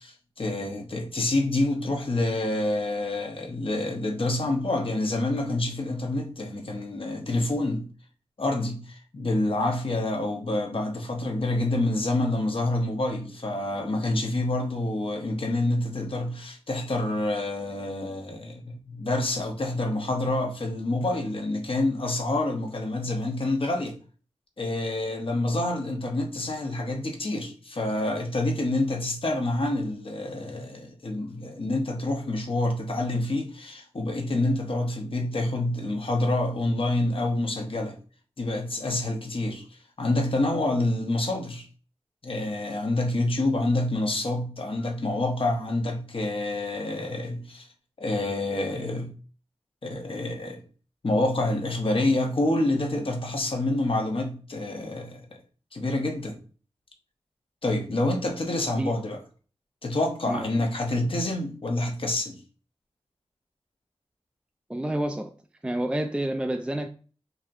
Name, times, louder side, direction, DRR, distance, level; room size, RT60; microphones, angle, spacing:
voice 1, 0.0-7.9 8.4-24.0 24.6-38.0 38.4-39.7 40.0-41.7 42.2-47.7 48.0-49.1 49.9-50.6 51.0-55.2 55.7-56.4 57.6-59.2 59.8-62.4, left 2 dB, 50° left, 1.0 m, -27 dB
voice 2, 64.7-65.3 65.6-66.9, right 1 dB, 10° right, 0.3 m, -29 dB
4.0 x 2.9 x 2.5 m
wide cardioid pair, 55°, 11 cm